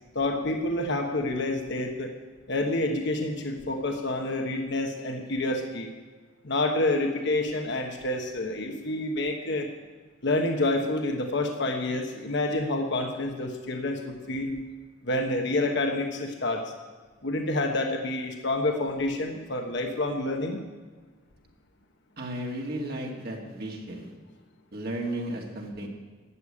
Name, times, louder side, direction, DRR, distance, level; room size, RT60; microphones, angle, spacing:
voice 1, 0.1-2.1 2.5-5.9 6.4-9.7 10.2-14.5 15.0-16.7 17.2-20.6, left 2 dB, 65° left, 3 dB, 1.2 m, -28 dB
voice 2, 22.2-24.1 24.7-25.9, right 1 dB, 55° right, 0 dB, 2.0 m, -34 dB
12.5 x 8.3 x 8.5 m, 1.4 s
head